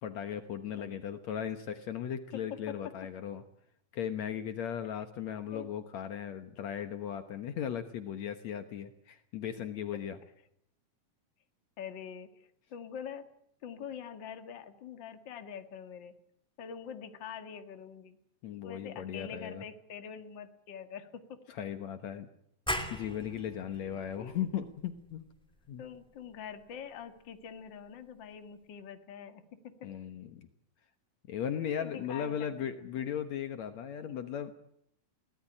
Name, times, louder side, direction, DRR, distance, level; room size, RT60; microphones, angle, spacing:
voice 1, 0.0-3.4 3.9-10.2 18.4-19.6 21.5-22.3 22.9-25.2 25.7-25.8 29.8-30.5 31.3-34.5, left 9 dB, 65° left, 8 dB, 2.3 m, -37 dB
voice 2, 2.3-2.9 4.8-5.0 5.5-5.7 9.9-10.0 11.8-13.3 13.6-16.1 16.6-18.2 18.6-21.4 24.2-24.4 25.8-29.9 31.8-32.7 32.9-33.1, left 7 dB, 40° left, 7 dB, 2.1 m, -45 dB
sound 1, 22.7-28.0, equal, ahead, 2.2 m, -42 dB
23.5 x 18.0 x 9.9 m, 0.73 s
omnidirectional pair, 3.6 m